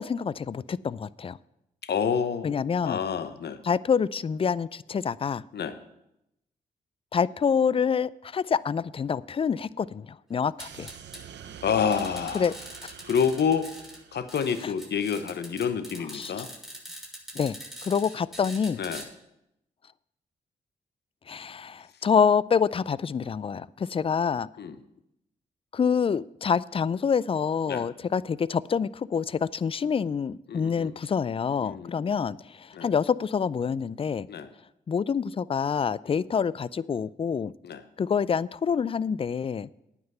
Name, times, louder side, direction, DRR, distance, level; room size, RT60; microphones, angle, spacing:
voice 1, 0.0-1.4 2.4-3.0 3.6-5.4 7.1-10.9 12.3-12.5 12.8-12.9 14.6-14.7 16.1-16.5 17.3-17.6 17.8-18.8 21.3-24.5 25.7-34.3 34.9-37.5 38.0-39.7, left 6 dB, 30° left, 21 dB, 0.4 m, -27 dB
voice 2, 1.8-3.6 5.5-5.8 11.6-12.5 13.0-13.7 14.1-16.5 18.8-19.0 24.6-24.7 27.7-27.9 30.5-30.9 31.6-32.1 32.7-32.9 34.3-34.5 36.1-36.2 37.6-37.8, left 7 dB, 65° left, 11 dB, 0.9 m, -28 dB
sound 1, 10.6-11.2 11.9-14.0 14.3-19.0, equal, ahead, 3.5 m, -43 dB
sound 2, 10.6-14.9, right 9 dB, 75° right, 0.7 m, -47 dB
9.4 x 6.0 x 7.8 m, 0.84 s
supercardioid pair, 40°, 19 cm